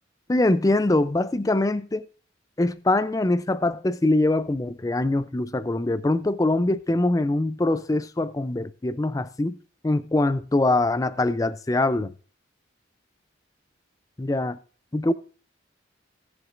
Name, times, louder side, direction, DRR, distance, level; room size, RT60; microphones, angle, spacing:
voice 1, 0.3-2.0 2.6-9.6 9.8-12.1 14.2-14.6 14.9-15.1, left 2 dB, 15° left, 0.4 m, -23 dB
18.0 x 7.2 x 2.5 m
head